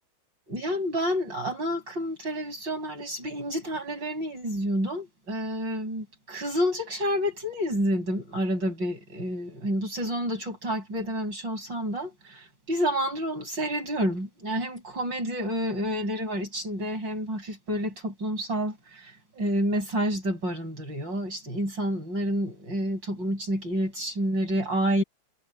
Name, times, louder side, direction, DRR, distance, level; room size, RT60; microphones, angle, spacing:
voice 1, 0.5-25.0, equal, 60° right, 8.4 m, -29 dB
omnidirectional pair, 2.2 m